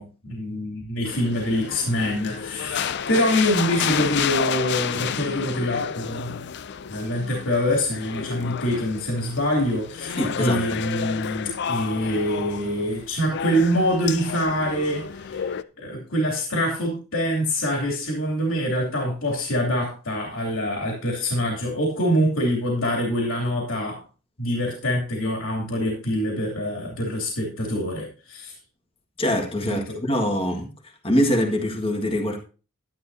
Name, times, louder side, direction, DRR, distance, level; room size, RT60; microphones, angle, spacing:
voice 1, 0.0-6.5 6.9-24.0 24.4-28.5 29.6-30.0, equal, 70° left, 3.0 m, -25 dB
sound 1, 1.1-15.6, left 7 dB, 55° left, 0.4 m, -31 dB
voice 2, 10.2-10.6 29.2-30.7 31.0-32.4, equal, 25° left, 1.7 m, -23 dB
12.0 x 10.5 x 2.8 m
head